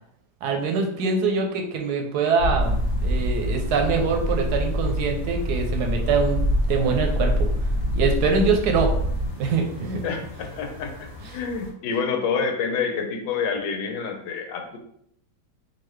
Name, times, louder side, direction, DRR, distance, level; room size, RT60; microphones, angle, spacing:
voice 1, 0.4-7.5 7.9-8.9 9.4-10.0, right 4 dB, 75° right, 3 dB, 1.0 m, -24 dB
sound 1, 2.4-9.3, equal, 15° right, 0.5 m, -25 dB
sound 2, 2.6-11.7, left 2 dB, 25° left, 0.7 m, -42 dB
voice 2, 10.0-14.8, left 5 dB, 85° left, 4 dB, 1.3 m, -28 dB
3.9 x 2.6 x 3.1 m, 0.70 s
omnidirectional pair, 1.9 m